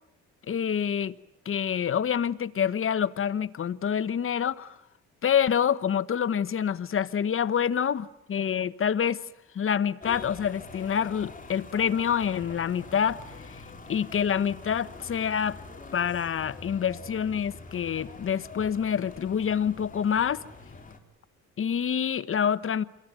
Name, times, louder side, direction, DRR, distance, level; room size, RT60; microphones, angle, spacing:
voice 1, 0.5-1.1 1.4-4.8 5.2-9.2 9.5-13.6 13.9-15.6 15.9-20.4 21.6-22.8, left 8 dB, 45° left, 1.0 m, -27 dB
sound 1, 10.0-21.0, left 3 dB, 25° left, 3.5 m, -45 dB
27.0 x 22.5 x 9.1 m
cardioid pair, 90°, 30 cm